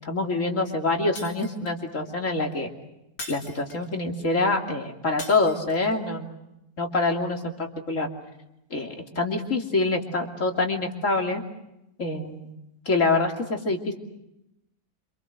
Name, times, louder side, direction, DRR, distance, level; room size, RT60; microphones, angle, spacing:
voice 1, 0.0-2.7 3.3-6.3 6.8-8.1 8.7-11.4 12.0-12.5 12.8-13.9, left 3 dB, 60° left, 2 dB, 3.3 m, -26 dB
Shatter, 1.2-1.9 3.2-4.0 5.2-6.0, left 2 dB, 80° left, 2.9 m, -41 dB
27.5 x 27.0 x 6.5 m, 0.86 s
omnidirectional pair, 1.5 m